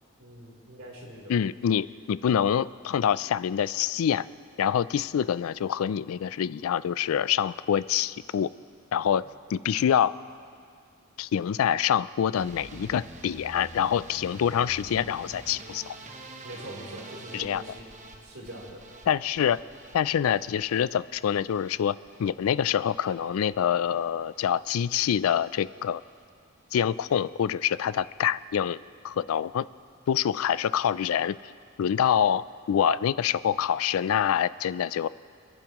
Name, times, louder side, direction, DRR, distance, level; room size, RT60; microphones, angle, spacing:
voice 1, 0.2-1.3 9.2-9.3 16.4-17.9 18.2-18.8, right 1 dB, 85° right, -3 dB, 3.4 m, -43 dB
voice 2, 1.3-4.3 4.6-8.5 8.9-9.2 9.5-10.2 11.2-16.0 17.3-17.6 19.1-19.6 19.9-26.0 26.7-28.8 29.0-29.6 30.1-31.4 31.8-35.1, left 9 dB, 90° left, 18 dB, 0.3 m, -26 dB
sound 1, 12.3-24.5 24.8-25.3 25.7-26.2 26.6-26.8 27.1-27.2 27.5-27.6, right 2 dB, 35° right, 0.9 m, -47 dB
28.0 x 10.5 x 3.0 m, 2.2 s
head